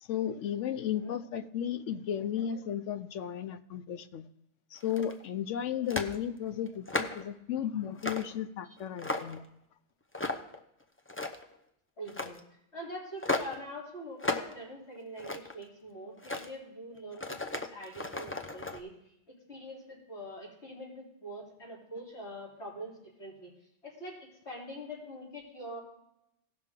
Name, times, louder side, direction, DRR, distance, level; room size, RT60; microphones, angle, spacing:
voice 1, 0.0-4.3 4.7-9.4, left 9 dB, 80° left, 12 dB, 1.0 m, -34 dB
sound 1, 4.8-5.3 5.9-6.2 6.7-7.3 8.0-8.3 8.8-9.5 10.1-10.6 11.0-11.5 12.1-12.4 13.2-13.6 14.2-14.5 14.9-15.6 16.2-16.5 17.1-18.8, left 2 dB, 15° left, 0.5 m, -35 dB
voice 2, 12.0-12.4 12.7-19.1 19.5-23.5 23.8-25.8, equal, 65° left, -5 dB, 3.9 m, -44 dB
17.0 x 5.9 x 3.7 m, 0.79 s
omnidirectional pair, 1.3 m